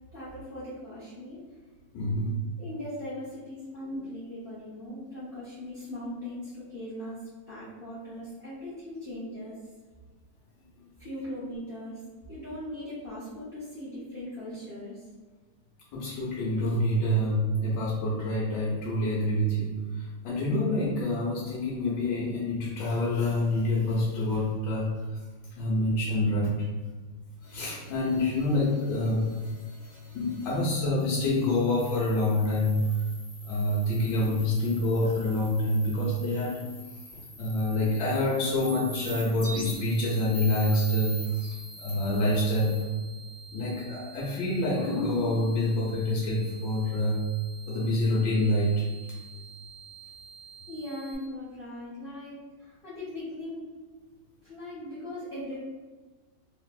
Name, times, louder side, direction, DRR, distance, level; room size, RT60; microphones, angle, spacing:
voice 1, 0.1-1.4 2.6-7.2 7.5-9.6 11.0-12.0 12.3-15.0 50.7-53.6 54.4-55.6, left 1 dB, 50° left, -10 dB, 0.6 m, -39 dB
voice 2, 1.9-2.3 15.9-25.0 25.6-26.5 27.5-29.3 30.1-32.9 33.5-36.6 37.1-42.8 43.5-47.2 47.7-48.8, left 1 dB, 80° left, -6 dB, 1.3 m, -27 dB
sound 1, 27.4-30.7 31.0-42.8, right 1 dB, 25° left, 1.5 m, -45 dB
sound 2, 39.7-51.1, right 5 dB, 30° right, 0.4 m, -49 dB
3.3 x 2.6 x 2.3 m, 1.3 s
omnidirectional pair, 1.9 m